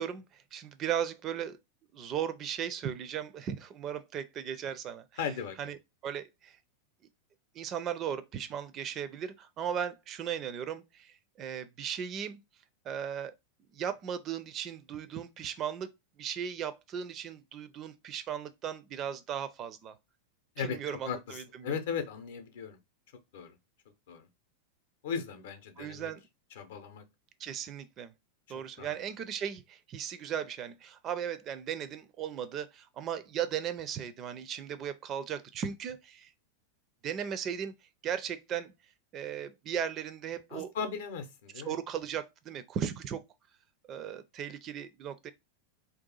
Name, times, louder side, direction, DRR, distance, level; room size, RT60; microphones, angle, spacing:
voice 1, 0.0-1.6 1.9-5.1 5.6-5.8 6.0-6.6 7.5-12.4 12.8-13.3 13.7-15.9 16.2-19.9 20.6-21.8 25.8-26.2 27.4-28.1 28.5-36.3 37.0-37.7 38.0-38.7 39.1-40.7 41.6-43.2 43.9-45.3, right 8 dB, 30° right, 0.4 m, -37 dB
voice 2, 5.2-5.7 20.6-21.4 21.6-22.8 23.3-23.6 24.1-24.3 25.0-26.1 26.6-27.0 28.8-29.0 40.5-41.8, left 6 dB, 55° left, 0.6 m, -37 dB
2.6 x 2.3 x 3.8 m
figure-of-eight pair, 90°, 0 cm